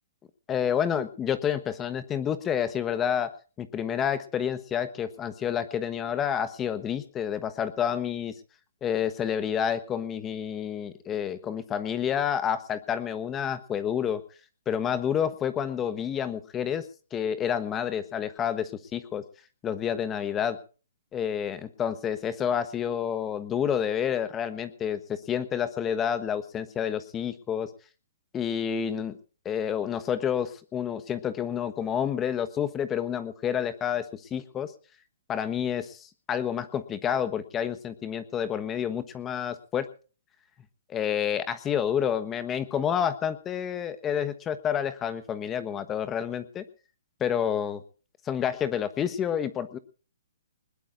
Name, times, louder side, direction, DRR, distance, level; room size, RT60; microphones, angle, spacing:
voice 1, 0.5-3.3 3.6-8.3 8.8-14.2 14.7-16.9 17.1-19.2 19.6-20.6 21.1-27.7 28.3-29.2 29.4-34.7 35.3-39.9 40.9-46.6 47.2-47.8 48.3-49.8, left 8 dB, 20° left, 12 dB, 1.2 m, -29 dB
21.5 x 20.0 x 2.6 m, 0.37 s
hypercardioid pair, 140°, 0 cm